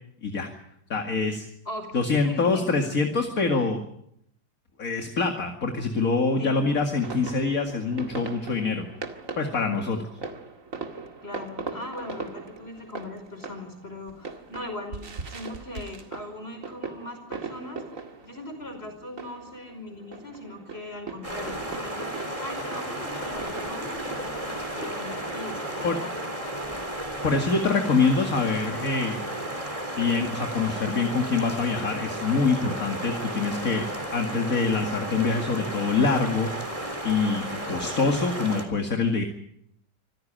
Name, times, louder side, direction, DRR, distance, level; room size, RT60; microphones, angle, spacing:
voice 1, 0.9-1.5 1.9-3.8 4.8-8.9 9.4-10.1 25.8-26.0 27.2-29.3 30.0-33.9 34.1-36.5 37.0-39.2, left 4 dB, 50° left, 4 dB, 2.6 m, -25 dB
voice 2, 1.7-2.6 6.4-6.7 11.2-17.8 18.2-26.2, left 1 dB, 35° left, 6 dB, 5.6 m, -39 dB
sound 1, 7.0-26.5, right 4 dB, 50° right, 2.4 m, -40 dB
sound 2, 21.2-38.7, right 1 dB, 20° right, 3.9 m, -33 dB
26.0 x 15.5 x 9.0 m, 0.75 s
omnidirectional pair, 1.8 m